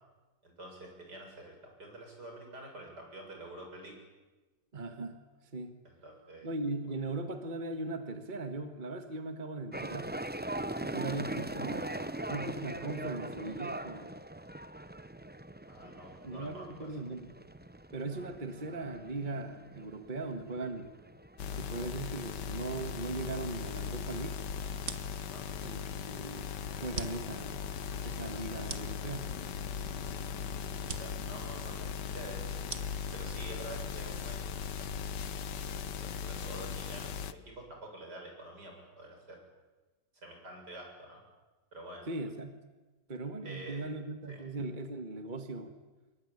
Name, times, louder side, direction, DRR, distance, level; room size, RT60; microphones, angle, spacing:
voice 1, 0.4-3.9 5.8-6.5 15.7-16.9 25.3-25.4 30.8-32.4 33.1-34.4 34.9-35.1 35.6-39.4 40.2-41.2 41.7-42.1 43.4-43.8 44.3-44.4, right 1 dB, 75° right, 2 dB, 7.8 m, -48 dB
voice 2, 4.7-5.2 5.5-5.8 6.4-10.1 10.8-14.1 16.2-17.3 17.9-20.9 21.5-24.4 25.6-26.5 26.8-27.7 28.0-29.3 42.1-42.6 43.1-45.7, right 2 dB, 30° right, 7 dB, 1.8 m, -39 dB
sound 1, 9.7-24.0, right 1 dB, 10° right, 0.4 m, -42 dB
sound 2, 21.4-37.3, left 7 dB, 90° left, 1.7 m, -38 dB
sound 3, 24.8-34.6, right 5 dB, 45° right, 1.7 m, -47 dB
26.5 x 22.5 x 9.9 m, 1.2 s
omnidirectional pair, 1.8 m